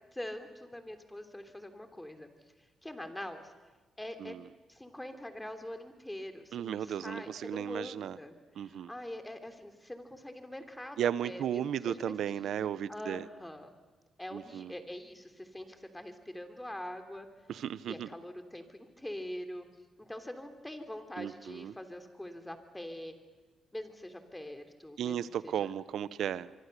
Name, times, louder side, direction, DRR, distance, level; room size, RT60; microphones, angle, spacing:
voice 1, 0.1-2.3 2.8-3.5 4.0-4.3 4.7-13.7 14.2-17.3 17.9-19.7 20.0-23.1 23.7-25.2 25.4-25.7, left 1 dB, 10° left, 7 dB, 3.2 m, -44 dB
voice 2, 6.5-8.2 8.6-8.9 11.0-13.3 14.3-14.7 17.5-18.1 21.2-21.7 25.0-26.5, right 9 dB, 80° right, 16 dB, 0.8 m, -35 dB
24.5 x 24.5 x 6.8 m, 1.3 s
cardioid pair, 75°, 0 cm